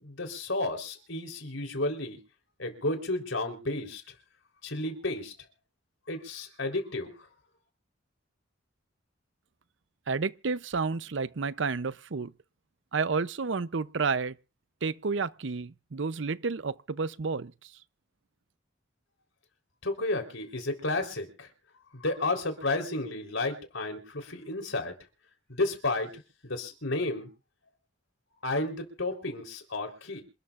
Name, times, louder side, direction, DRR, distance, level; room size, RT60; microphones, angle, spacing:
voice 1, 0.0-2.2 2.6-4.0 4.6-5.3 6.1-7.1 19.8-21.5 21.9-24.9 25.5-26.1 26.4-27.3 28.4-30.2, left 2 dB, 75° left, 3.9 m, -32 dB
voice 2, 10.1-12.3 12.9-14.4 14.8-17.7, right 4 dB, 65° right, 0.6 m, -31 dB
27.5 x 12.5 x 2.5 m
head